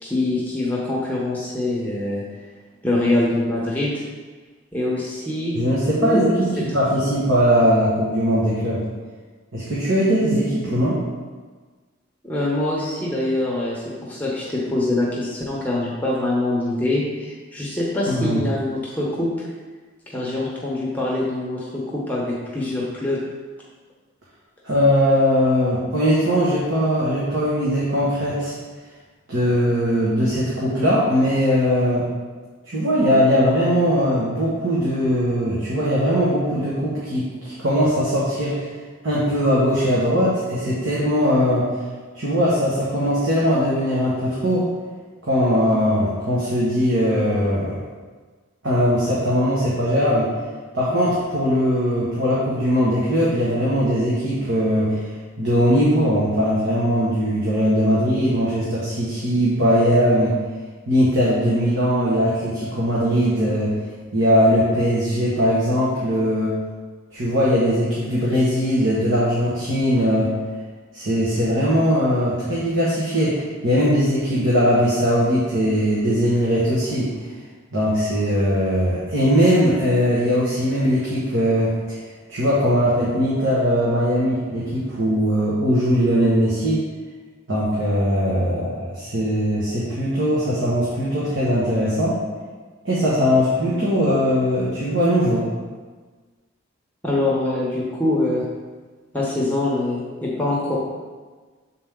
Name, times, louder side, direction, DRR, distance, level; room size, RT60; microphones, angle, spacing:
voice 1, 0.0-2.2 2.8-4.0 4.7-5.5 6.0-6.3 12.2-19.3 20.1-23.2 97.0-98.4 99.1-100.8, left 2 dB, 10° left, -5 dB, 0.9 m, -24 dB
voice 2, 5.5-8.8 9.5-11.0 18.1-18.4 24.6-28.5 29.3-32.1 32.6-38.7 39.0-41.7 42.1-44.7 45.2-47.8 48.6-50.3 50.7-55.0 55.4-60.3 60.9-63.7 64.1-66.5 67.1-70.3 70.9-77.1 77.7-82.0 82.3-86.8 87.5-92.2 92.8-95.5, equal, 65° right, -8 dB, 1.4 m, -20 dB
7.2 x 4.3 x 3.7 m, 1.4 s
head